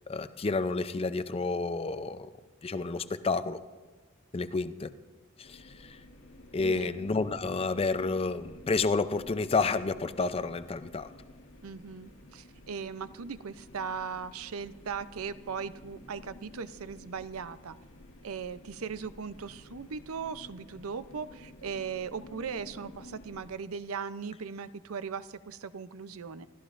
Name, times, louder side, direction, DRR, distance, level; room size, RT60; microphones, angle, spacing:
voice 1, 0.1-2.3 2.6-3.6 4.3-4.9 5.4-5.6 5.9-6.0 6.5-11.1, left 3 dB, 25° left, 12 dB, 0.5 m, -30 dB
sound 1, 5.4-23.5, left 1 dB, 70° left, 1.4 m, -52 dB
voice 2, 6.6-6.9 11.6-17.8 18.2-26.5, right 6 dB, 85° right, 14 dB, 0.5 m, -38 dB
27.5 x 13.5 x 2.5 m, 1.4 s
head